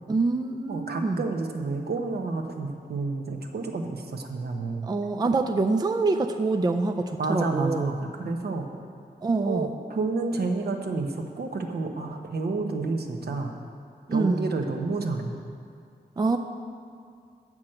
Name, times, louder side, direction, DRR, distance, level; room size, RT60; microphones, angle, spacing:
voice 1, 0.1-1.2 4.8-7.9 9.2-9.7 14.1-14.5 16.2-16.4, right 3 dB, 25° right, 6 dB, 0.4 m, -25 dB
voice 2, 0.7-4.9 7.2-8.7 9.4-13.5 14.1-15.3, right 3 dB, 70° right, 3 dB, 1.0 m, -30 dB
8.7 x 6.1 x 7.7 m, 2.3 s
wide cardioid pair, 125°, 17 cm